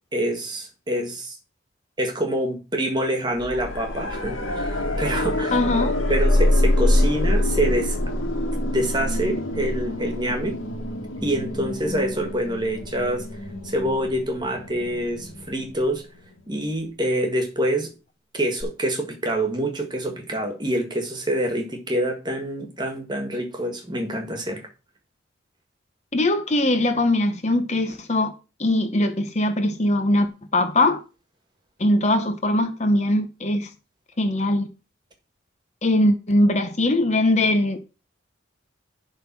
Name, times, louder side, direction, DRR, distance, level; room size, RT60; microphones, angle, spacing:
voice 1, 0.1-1.4 2.0-5.6 6.1-8.0 8.7-10.6 11.2-13.2 13.6-16.0 16.5-17.9 18.3-24.6, right 1 dB, 20° right, 1.6 m, -26 dB
sound 1, 3.4-16.3 18.6-18.7, left 1 dB, 85° left, 1.8 m, -25 dB
voice 2, 5.5-5.9 26.1-28.3 28.6-31.0 31.8-33.7 34.2-34.7 35.8-37.8, left 1 dB, 35° left, 0.9 m, -21 dB
11.0 x 3.8 x 6.0 m
head